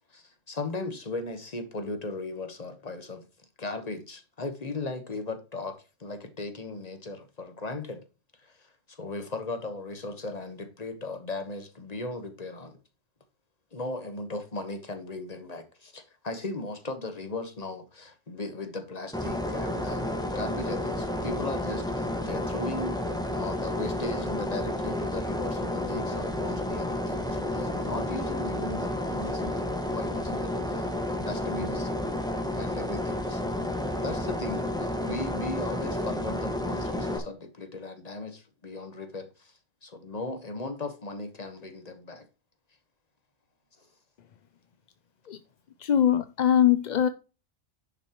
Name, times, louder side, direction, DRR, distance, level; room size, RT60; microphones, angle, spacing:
voice 1, 0.1-3.3 3.6-8.0 8.4-12.8 13.7-22.9 23.3-29.6 29.9-31.9 32.5-39.5 39.8-42.3, left 2 dB, 35° left, 1.4 m, -37 dB
sound 1, 19.1-37.2, left 1 dB, 5° left, 1.5 m, -31 dB
voice 2, 45.8-47.1, left 10 dB, 50° left, 0.6 m, -22 dB
10.5 x 6.1 x 3.0 m
omnidirectional pair, 1.2 m